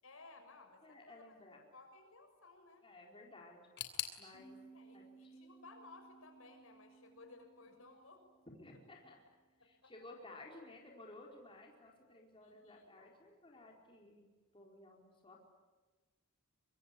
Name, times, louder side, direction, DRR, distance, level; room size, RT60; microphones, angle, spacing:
voice 1, 0.0-1.3 1.7-2.8 4.7-8.2 9.6-9.9 12.4-13.1, left 3 dB, 75° left, 5 dB, 6.6 m, -59 dB
voice 2, 0.8-1.6 2.8-3.7 4.2-4.6 4.9-5.4 7.6-7.7 8.5-9.2 9.6-15.4, left 2 dB, 25° left, 0 dB, 4.4 m, -56 dB
sound 1, 3.8-6.6 6.9-7.7 8.0-8.1 9.0-9.1, left 10 dB, 55° left, 3.0 m, -48 dB
sound 2, 4.3-9.7, right 4 dB, 70° right, 6.2 m, -62 dB
25.0 x 24.0 x 9.9 m, 1.3 s
head